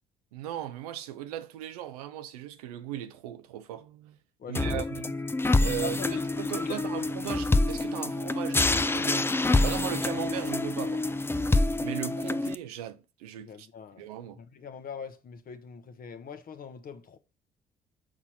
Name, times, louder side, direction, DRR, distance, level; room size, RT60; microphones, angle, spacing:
voice 1, 0.3-4.2 4.5-5.1 5.6-11.3 11.8-13.7 14.0-14.4, right 12 dB, 90° right, 0.7 m, -38 dB
voice 2, 4.4-4.8 5.8-6.8 13.4-14.0 14.4-17.2, left 5 dB, 50° left, 1.1 m, -40 dB
sound 1, 4.5-12.5, left 2 dB, 10° left, 0.5 m, -27 dB
6.1 x 4.3 x 6.1 m
hypercardioid pair, 55°, 19 cm